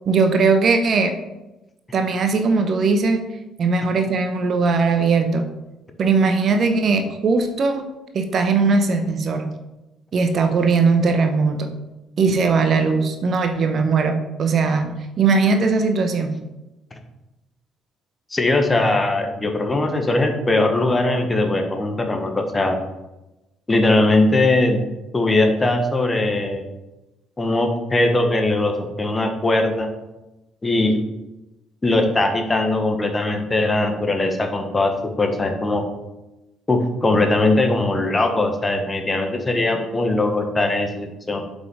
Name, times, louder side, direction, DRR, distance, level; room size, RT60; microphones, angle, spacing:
voice 1, 0.1-1.1 1.9-3.2 3.6-5.5 6.0-7.9 8.1-9.5 10.1-11.7 12.2-16.4, right 4 dB, 50° right, 6 dB, 1.0 m, -19 dB
voice 2, 18.3-22.8 23.7-24.8 25.1-26.7 27.4-29.9 30.6-31.0 31.8-34.9 35.2-35.8 36.7-41.4, left 2 dB, 25° left, 5 dB, 1.4 m, -20 dB
8.0 x 5.4 x 4.9 m, 1.0 s
figure-of-eight pair, 45°, 0 cm